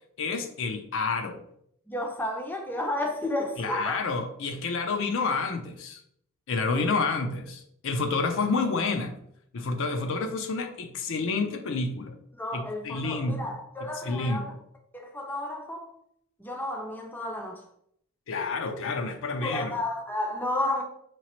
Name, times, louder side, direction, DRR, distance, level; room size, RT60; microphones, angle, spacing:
voice 1, 0.2-1.4 3.6-6.0 6.5-9.2 9.5-12.1 12.5-13.5 14.0-14.5 18.3-19.7, left 4 dB, 60° left, 0.5 m, -29 dB
voice 2, 1.9-4.0 6.7-6.9 12.3-14.5 14.9-15.9 16.4-17.6 19.4-20.8, left 1 dB, 10° left, 0.5 m, -32 dB
4.8 x 3.0 x 2.9 m
head